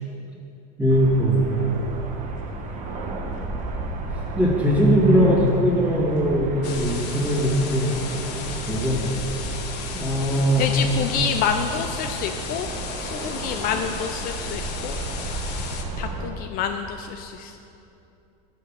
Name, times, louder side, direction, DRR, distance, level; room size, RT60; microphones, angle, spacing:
voice 1, 0.8-1.4 4.4-7.9 8.7-9.0 9.9-10.9, equal, 5° right, -5 dB, 2.1 m, -20 dB
sound 1, 0.9-16.3, right 2 dB, 40° right, 1.0 m, -33 dB
sound 2, 6.6-15.8, left 6 dB, 75° left, 0.9 m, -36 dB
voice 2, 10.6-12.7 13.1-15.0 16.0-17.6, left 7 dB, 45° left, 6 dB, 0.4 m, -28 dB
6.5 x 5.7 x 7.2 m, 2.8 s
supercardioid pair, 120°, 20 cm